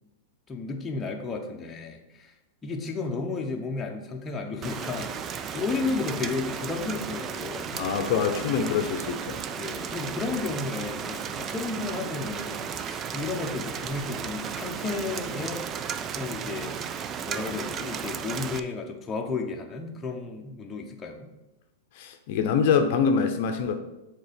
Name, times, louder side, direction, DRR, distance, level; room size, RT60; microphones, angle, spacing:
voice 1, 0.5-2.3 2.6-7.7 9.6-15.7 16.1-16.8 17.3-21.3, left 4 dB, 15° left, 1 dB, 0.8 m, -33 dB
Rain, 4.6-18.6, right 7 dB, 25° right, 0.4 m, -34 dB
voice 2, 7.7-9.4 21.9-23.8, left 6 dB, 55° left, 6 dB, 0.7 m, -25 dB
7.1 x 3.7 x 5.1 m, 0.98 s
supercardioid pair, 145°, 0 cm